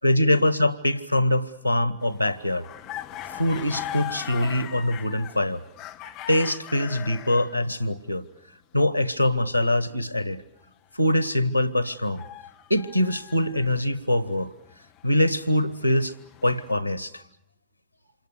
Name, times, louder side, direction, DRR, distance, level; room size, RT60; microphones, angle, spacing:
voice 1, 0.0-2.7 3.3-5.6 6.3-8.3 8.7-10.4 10.9-12.2 12.7-14.5 15.0-16.1 16.4-17.2, left 1 dB, 90° right, 1.1 m, -23 dB
sound 1, 2.0-7.6 11.8-13.8 14.6-16.7, left 11 dB, 40° left, 1.5 m, -40 dB
28.0 x 27.0 x 6.8 m
figure-of-eight pair, 90°, 0 cm